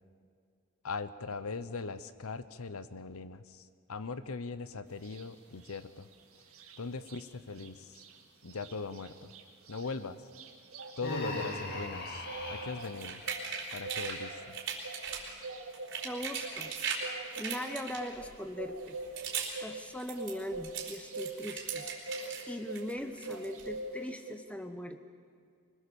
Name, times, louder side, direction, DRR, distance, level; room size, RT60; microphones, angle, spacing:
voice 1, 0.8-6.1 6.8-8.0 8.4-9.3 9.7-10.2 11.0-13.2 13.7-14.6, left 4 dB, 75° left, 14 dB, 0.8 m, -40 dB
sound 1, 5.0-5.2 5.6-7.2 7.5-7.7 7.9-23.0 23.2-24.3, right 3 dB, 70° right, 2.4 m, -44 dB
Human voice, 11.0-12.9, left 2 dB, 45° left, 2.5 m, -38 dB
sound 2, 12.8-14.2 14.5-15.3 15.7-17.0 17.3-18.3 18.8-19.6 19.9-22.4 22.7-23.7, right 6 dB, 55° right, 3.9 m, -38 dB
voice 2, 16.0-16.7 17.4-19.0 19.6-21.9 22.5-25.0, left 1 dB, 5° left, 8 dB, 0.9 m, -40 dB
24.5 x 20.5 x 7.1 m, 2.2 s
head